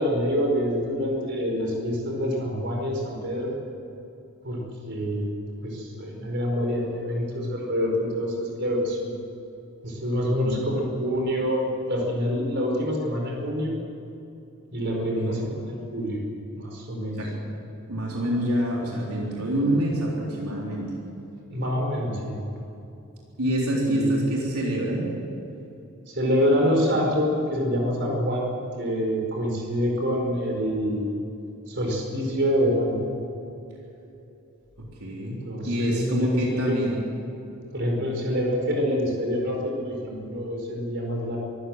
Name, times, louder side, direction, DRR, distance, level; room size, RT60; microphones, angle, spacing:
voice 1, 0.0-3.5 4.4-5.3 5.6-9.1 9.8-13.8 14.7-16.2 16.5-17.2 21.5-22.4 23.8-24.1 26.1-28.5 28.8-31.1 31.7-33.0 35.2-36.8 37.7-41.4, equal, 50° right, 0 dB, 4.9 m, -26 dB
voice 2, 10.4-10.7 15.2-15.5 17.1-17.3 17.9-20.9 23.4-25.0 35.0-37.0, right 1 dB, 80° right, -3 dB, 3.9 m, -26 dB
24.0 x 14.5 x 8.0 m, 2.8 s
head